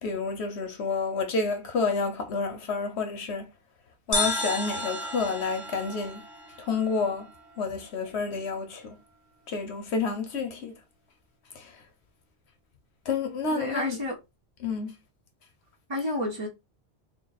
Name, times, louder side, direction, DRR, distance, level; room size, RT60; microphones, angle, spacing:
voice 1, 0.0-3.5 4.1-6.2 6.6-9.0 9.5-10.7 11.5-11.8 13.0-14.0 14.6-15.0, left 4 dB, 80° left, 1.1 m, -29 dB
sound 1, 4.1-7.6, left 1 dB, 15° left, 1.3 m, -32 dB
voice 2, 13.5-14.2 15.9-16.5, left 1 dB, 30° right, 0.8 m, -30 dB
3.9 x 2.1 x 4.0 m
omnidirectional pair, 1.1 m